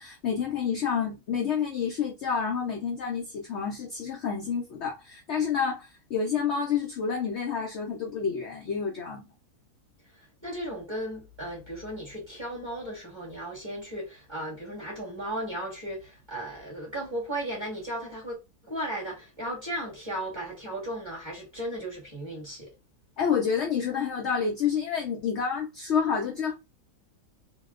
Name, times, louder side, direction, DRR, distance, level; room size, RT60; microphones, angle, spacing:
voice 1, 0.0-9.2 23.2-26.5, left 6 dB, 75° left, 0.6 m, -29 dB
voice 2, 10.4-22.7, right 1 dB, 20° right, 1.0 m, -36 dB
2.8 x 2.1 x 2.3 m
omnidirectional pair, 1.8 m